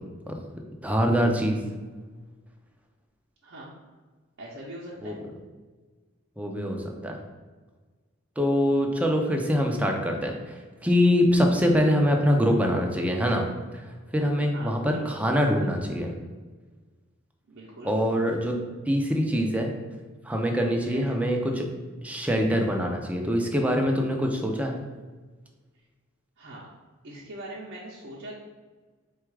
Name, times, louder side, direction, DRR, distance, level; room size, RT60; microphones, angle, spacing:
voice 1, 0.8-1.6 5.0-5.2 6.4-7.2 8.4-16.1 17.8-19.7 20.2-21.7 22.0-24.8, equal, 5° right, 2 dB, 0.5 m, -24 dB
voice 2, 4.4-5.2 14.5-15.2 17.5-18.0 20.9-21.2 26.4-26.7 27.0-28.4, right 1 dB, 60° right, -6 dB, 0.7 m, -42 dB
4.0 x 2.3 x 4.6 m, 1.4 s
head